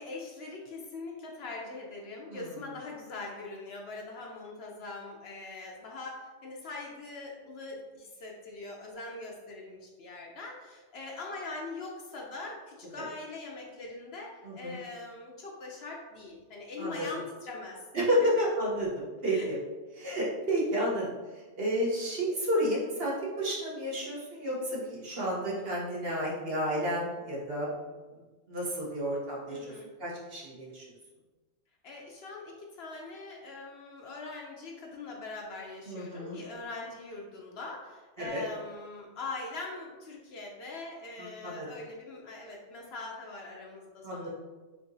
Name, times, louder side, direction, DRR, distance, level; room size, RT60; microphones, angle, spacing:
voice 1, 0.0-17.8 18.2-18.3 19.3-19.5 29.5-29.9 31.8-44.3, left 3 dB, 65° left, -1 dB, 0.8 m, -42 dB
voice 2, 14.4-14.8 16.8-17.0 17.9-19.6 20.0-21.1 21.6-28.0 28.5-29.6 30.0-30.8 35.9-36.4 38.2-38.4 41.2-41.7 44.0-44.3, equal, 55° right, -5 dB, 1.2 m, -31 dB
4.7 x 2.9 x 2.6 m, 1.2 s
omnidirectional pair, 1.3 m